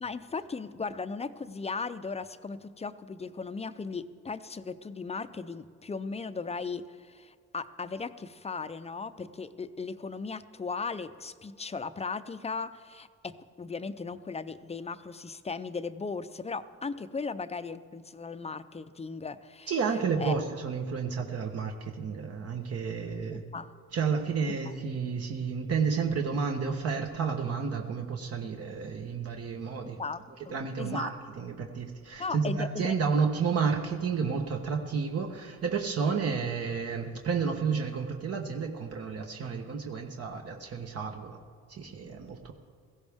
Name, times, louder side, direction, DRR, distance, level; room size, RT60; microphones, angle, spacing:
voice 1, 0.0-19.7 20.2-20.4 23.3-23.7 29.8-31.1 32.2-33.0, left 4 dB, 20° left, 13 dB, 0.5 m, -37 dB
voice 2, 19.7-23.4 23.9-30.0 30.3-41.4 41.7-42.5, right 5 dB, 55° right, 3 dB, 1.2 m, -31 dB
17.0 x 15.5 x 3.6 m, 2.2 s
cardioid pair, 100°, 29 cm